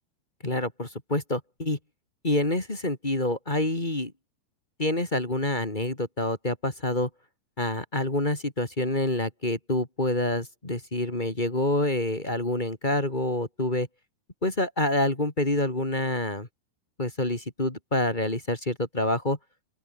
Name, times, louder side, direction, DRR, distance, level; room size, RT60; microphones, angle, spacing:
voice 1, 0.4-1.8 2.2-4.1 4.8-7.1 7.6-13.9 14.4-16.5 17.0-19.4, left 1 dB, 15° left, 1.8 m, -27 dB
open air
omnidirectional pair, 5.7 m